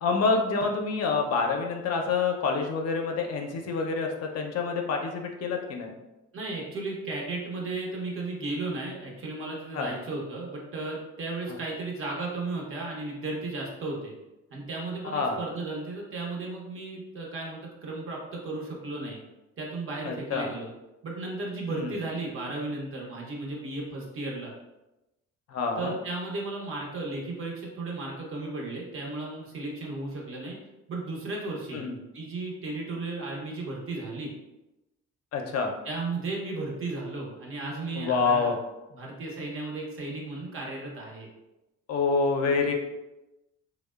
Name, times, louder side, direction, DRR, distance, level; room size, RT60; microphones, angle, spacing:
voice 1, 0.0-5.9 9.7-9.9 15.1-15.4 20.0-20.5 21.7-21.9 25.5-25.9 31.7-31.9 35.3-35.7 38.0-38.6 41.9-42.7, left 4 dB, 55° left, 3 dB, 0.4 m, -27 dB
voice 2, 6.3-14.1 14.5-19.2 19.6-20.7 21.0-24.5 25.8-30.6 30.9-31.9 32.1-34.3 35.8-38.5 38.9-41.3, right 2 dB, 45° right, -2 dB, 0.7 m, -35 dB
2.8 x 2.0 x 2.2 m, 0.97 s
cardioid pair, 90°, 30 cm